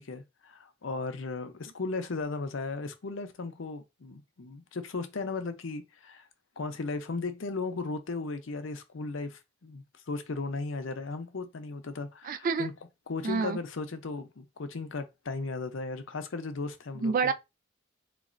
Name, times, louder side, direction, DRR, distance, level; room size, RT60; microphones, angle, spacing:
voice 1, 0.0-6.2 6.6-12.7 13.1-17.3, left 3 dB, 70° left, 0.6 m, -36 dB
voice 2, 12.2-12.7 13.2-13.6 17.0-17.3, right 4 dB, 45° right, 0.3 m, -27 dB
4.0 x 2.9 x 2.5 m
head